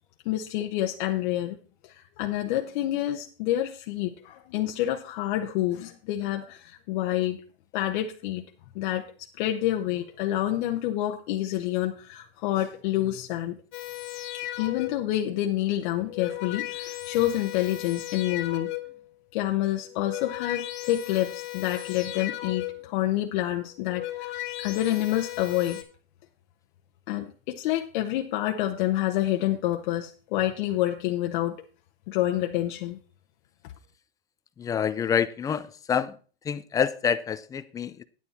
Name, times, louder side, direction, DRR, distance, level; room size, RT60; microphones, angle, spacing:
voice 1, 0.2-1.6 1.8-7.4 7.7-8.4 8.7-9.1 9.4-13.6 14.6-18.7 19.3-25.8 27.1-31.6 32.1-33.0, left 13 dB, 55° left, 3 dB, 1.0 m, -28 dB
sound 1, 13.7-15.2 15.9-19.1 19.8-23.0 23.7-25.8, left 15 dB, 40° left, 1.6 m, -36 dB
voice 2, 34.6-36.2 36.4-38.0, left 7 dB, 10° left, 14 dB, 0.4 m, -27 dB
9.6 x 9.4 x 4.2 m, 0.38 s
hypercardioid pair, 130°, 30 cm